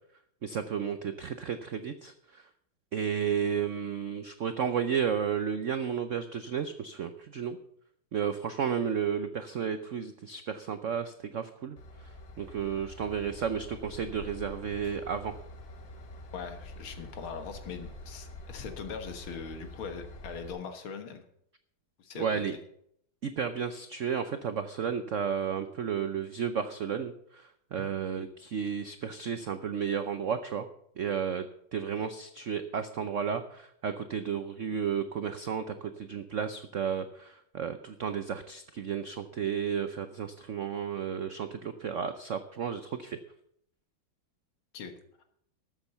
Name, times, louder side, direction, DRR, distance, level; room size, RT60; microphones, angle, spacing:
voice 1, 0.4-2.4 2.9-7.6 8.1-11.8 12.4-15.3 22.2-22.5 23.2-30.7 31.0-31.5 31.7-43.2, right 7 dB, 80° right, 10 dB, 0.6 m, -32 dB
Train / Engine, 11.8-20.5, left 1 dB, 50° left, 1.7 m, -46 dB
voice 2, 16.3-21.2 22.0-22.6 44.7-44.9, left 6 dB, 85° left, 7 dB, 2.3 m, -41 dB
13.0 x 7.6 x 6.8 m, 0.71 s
omnidirectional pair, 2.2 m